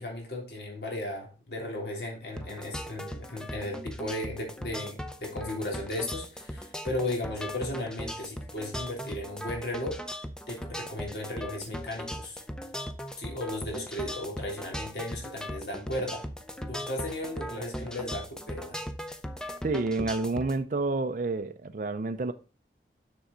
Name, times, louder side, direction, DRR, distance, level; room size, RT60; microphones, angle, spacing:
voice 1, 0.0-10.0 10.5-12.4 13.2-16.2 16.7-18.8, left 1 dB, 70° left, 3.0 m, -35 dB
sound 1, 2.4-20.6, equal, 5° left, 0.6 m, -38 dB
voice 2, 19.6-22.3, right 3 dB, 45° right, 0.4 m, -29 dB
7.0 x 6.3 x 3.8 m
head